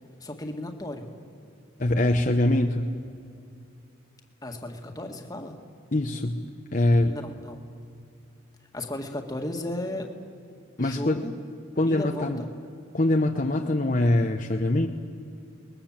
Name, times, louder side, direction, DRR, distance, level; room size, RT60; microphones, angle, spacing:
voice 1, 0.2-1.1 4.4-5.6 7.1-7.6 8.7-10.1 10.8-11.3 11.9-12.5, left 1 dB, 20° left, 3 dB, 1.9 m, -34 dB
voice 2, 1.8-2.9 5.9-6.4 6.7-7.1 10.8-11.2 11.8-12.4 12.9-14.9, left 1 dB, 40° left, 2 dB, 0.9 m, -23 dB
29.5 x 21.0 x 7.4 m, 2.6 s
head